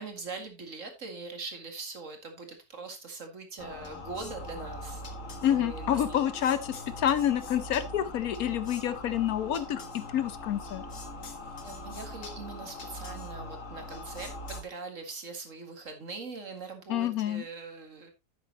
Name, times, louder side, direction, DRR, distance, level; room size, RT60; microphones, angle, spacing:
voice 1, 0.0-5.0 5.4-6.2 11.6-18.1, right 4 dB, 55° right, 5 dB, 2.2 m, -42 dB
sound 1, 3.6-14.6, left 1 dB, 55° left, 1.8 m, -41 dB
voice 2, 5.4-10.8 16.9-17.4, left 10 dB, 70° left, 14 dB, 1.1 m, -28 dB
11.0 x 8.2 x 2.8 m, 0.25 s
omnidirectional pair, 1.7 m